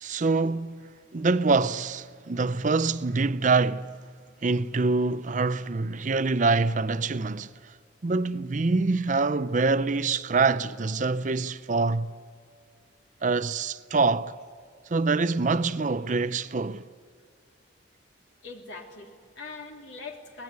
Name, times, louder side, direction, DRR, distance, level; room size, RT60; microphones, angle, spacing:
voice 1, 0.0-0.8 1.1-3.9 4.4-7.5 8.0-12.1 13.2-14.3 14.9-16.9, right 3 dB, 40° right, 0.5 m, -25 dB
voice 2, 18.4-20.4, left 4 dB, 70° left, 3.3 m, -42 dB
24.5 x 20.0 x 9.5 m
head